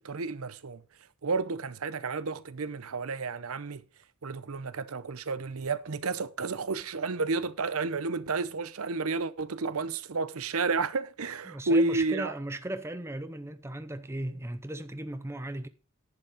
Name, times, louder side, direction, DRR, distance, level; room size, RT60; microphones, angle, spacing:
voice 1, 0.0-0.8 1.2-3.8 4.2-12.3, right 3 dB, 80° right, 0.8 m, -31 dB
voice 2, 11.5-15.7, right 1 dB, 10° right, 0.6 m, -37 dB
11.0 x 8.2 x 5.0 m
head